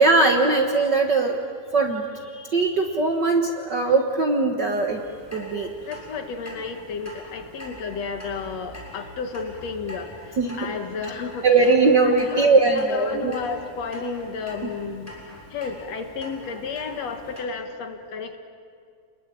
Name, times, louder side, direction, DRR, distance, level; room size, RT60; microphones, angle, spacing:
voice 1, 0.0-1.4 1.7-5.0 5.3-5.7 10.4-10.6 11.4-13.3, right 3 dB, 50° right, 3 dB, 1.4 m, -20 dB
Clock, 4.9-17.4, equal, 5° left, 6.8 m, -43 dB
voice 2, 5.9-11.5 12.0-15.2 15.5-18.4, left 5 dB, 60° left, 6 dB, 2.5 m, -32 dB
30.0 x 21.0 x 9.2 m, 2.3 s
omnidirectional pair, 3.5 m